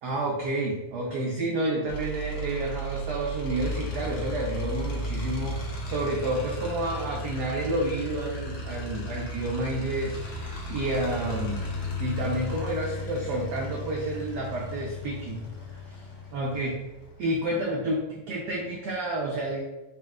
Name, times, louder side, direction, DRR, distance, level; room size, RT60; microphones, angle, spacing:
voice 1, 0.0-11.7 12.0-15.4 15.7-16.0 16.3-16.8 17.2-19.6, right 1 dB, 90° right, -2 dB, 0.8 m, -30 dB
sound 1, 1.9-17.5, equal, 85° left, 1.8 m, -35 dB
4.3 x 2.2 x 3.5 m, 1.0 s
omnidirectional pair, 2.4 m